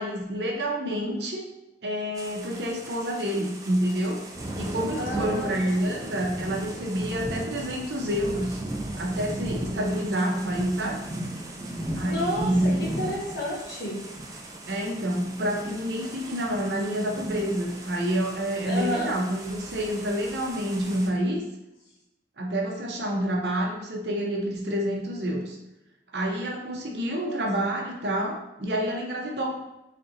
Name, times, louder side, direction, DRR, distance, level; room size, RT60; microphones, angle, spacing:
voice 1, 0.0-1.4 1.8-4.2 4.5-8.6 9.0-11.0 11.9-12.9 14.7-21.4 22.4-25.6 26.1-29.6, equal, 75° right, 1 dB, 0.8 m, -28 dB
sound 1, 2.2-21.1, right 1 dB, 20° right, 0.4 m, -36 dB
voice 2, 4.9-6.1 12.0-14.0 18.6-19.1 27.0-27.4, equal, 70° left, -4 dB, 1.4 m, -32 dB
3.9 x 3.3 x 2.7 m, 0.92 s
head